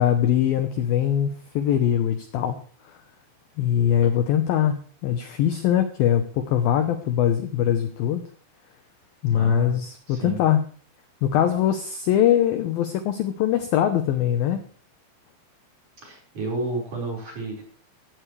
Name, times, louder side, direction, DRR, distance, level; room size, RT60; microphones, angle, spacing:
voice 1, 0.0-3.0 3.6-8.3 9.2-10.6 11.2-14.6, left 10 dB, 80° left, 8 dB, 2.1 m, -22 dB
voice 2, 9.3-9.8 10.1-10.4 16.0-17.6, right 3 dB, 40° right, -1 dB, 6.2 m, -31 dB
16.0 x 15.0 x 3.3 m, 0.41 s
omnidirectional pair, 5.6 m